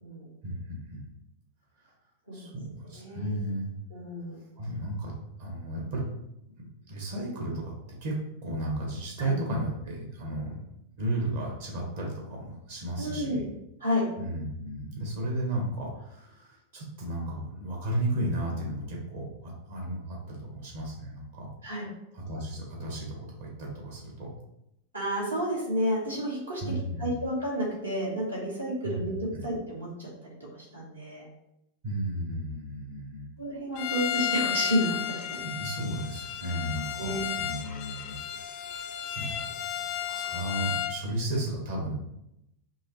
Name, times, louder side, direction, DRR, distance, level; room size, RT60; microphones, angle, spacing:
voice 1, 0.4-1.1 2.3-3.7 4.6-5.1 5.4-6.0 6.6-7.7 8.0-8.1 8.4-10.6 11.0-13.5 14.2-21.5 22.1-24.3 26.6-27.1 28.8-29.0 29.3-29.4 31.8-33.3 35.4-38.2 38.5-38.6 38.9-39.5 39.8-42.0, right 1 dB, 55° right, -2 dB, 1.3 m, -34 dB
voice 2, 3.0-3.4 3.9-4.4 9.2-9.3 13.0-13.4 13.8-14.0 21.6-21.9 24.9-26.6 27.0-30.4 30.7-31.3 33.4-35.4 37.0-37.2, equal, 75° right, -4 dB, 1.3 m, -31 dB
Bowed string instrument, 33.7-41.0, left 10 dB, 40° left, 0.4 m, -33 dB
5.3 x 2.0 x 3.1 m, 0.84 s
figure-of-eight pair, 90°, 0 cm